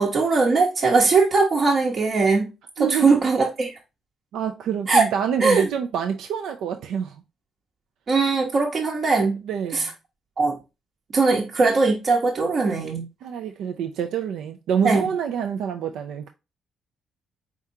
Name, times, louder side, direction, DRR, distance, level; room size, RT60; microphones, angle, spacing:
voice 1, 0.0-2.4 2.8-3.7 4.9-5.0 5.4-5.7 8.1-9.4 9.7-9.9 10.4-10.6 11.1-13.1 14.8-15.1, right 4 dB, 50° right, 0.9 m, -20 dB
voice 2, 2.8-3.2 4.3-7.2 9.4-9.9 13.2-16.3, right 8 dB, 80° right, 0.4 m, -27 dB
4.5 x 3.6 x 2.7 m
cardioid pair, 90°, 0 cm